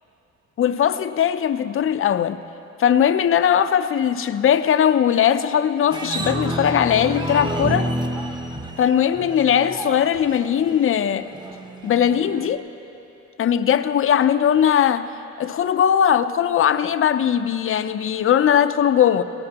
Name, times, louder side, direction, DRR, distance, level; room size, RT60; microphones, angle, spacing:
voice 1, 0.6-2.4 2.8-7.9 8.8-11.3 11.8-12.6 13.4-15.1 15.4-19.2, left 9 dB, 45° left, 11 dB, 0.5 m, -19 dB
sound 1, 5.9-12.6, right 1 dB, 15° right, 1.0 m, -30 dB
17.5 x 17.5 x 2.9 m, 2.8 s
cardioid pair, 90°, 30 cm